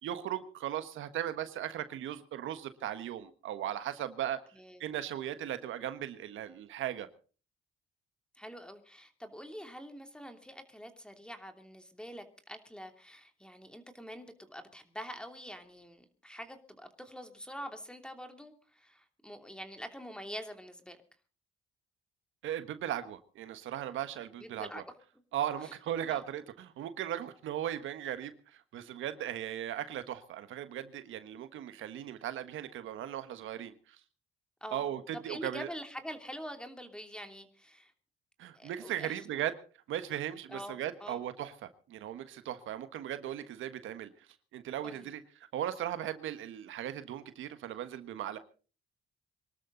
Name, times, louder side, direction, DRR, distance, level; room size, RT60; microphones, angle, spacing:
voice 1, 0.0-4.4 4.8-7.1 22.4-24.8 25.3-34.0 34.7-35.7 38.4-39.5 39.9-44.1 44.5-45.2 45.5-48.4, right 11 dB, 80° right, 11 dB, 1.4 m, -37 dB
voice 2, 8.3-21.0 24.4-24.8 25.6-25.7 26.1-26.2 34.6-37.9 38.5-39.4 40.5-41.2 44.8-45.1, equal, 5° left, 6 dB, 2.9 m, -45 dB
24.5 x 12.5 x 4.0 m, 0.38 s
cardioid pair, 90°, 20 cm